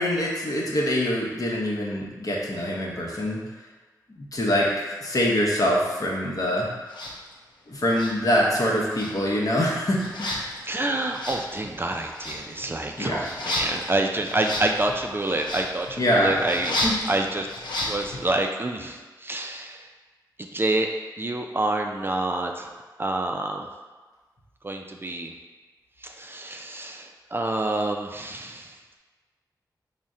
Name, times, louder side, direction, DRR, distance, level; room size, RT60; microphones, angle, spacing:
voice 1, 0.0-3.4 4.2-4.7 5.0-6.7 7.7-10.5 13.0-13.2 16.0-16.4 16.8-17.0, equal, 50° left, -3 dB, 0.8 m, -24 dB
sound 1, 6.9-7.1 7.9-8.6 8.9-18.3, left 1 dB, 85° left, 0.5 m, -33 dB
voice 2, 10.6-16.8 17.1-17.5 17.9-19.9 20.4-20.9 21.2-23.7 24.6-25.3 26.0-29.0, right 2 dB, 30° right, 3 dB, 0.3 m, -28 dB
4.0 x 2.1 x 3.6 m, 1.3 s
cardioid pair, 50°, 8 cm